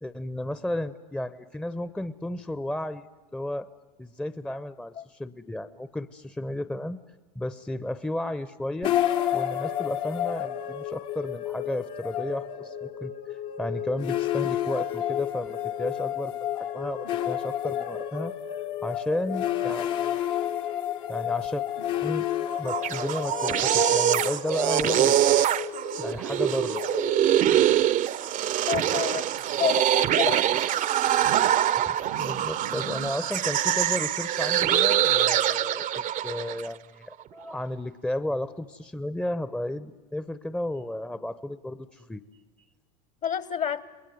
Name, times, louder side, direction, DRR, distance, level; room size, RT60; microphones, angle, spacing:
voice 1, 0.0-3.0 3.3-3.7 4.0-7.0 7.3-8.9 9.3-18.3 18.8-20.2 21.1-21.6 22.0-22.2 22.6-25.4 26.0-26.8 31.9-42.2, left 1 dB, 5° left, 14 dB, 0.9 m, -33 dB
sound 1, 8.8-27.9, left 11 dB, 60° left, 1.7 m, -31 dB
sound 2, 22.5-36.7, right 11 dB, 40° right, 0.8 m, -24 dB
Zipper (clothing), 28.3-29.9 31.1-31.6 32.0-33.1, right 10 dB, 70° right, 1.3 m, -41 dB
voice 2, 28.7-29.3 29.6-30.5 43.2-43.8, left 8 dB, 40° left, 16 dB, 1.4 m, -28 dB
28.5 x 21.0 x 9.3 m, 1.2 s
hypercardioid pair, 85°, 20 cm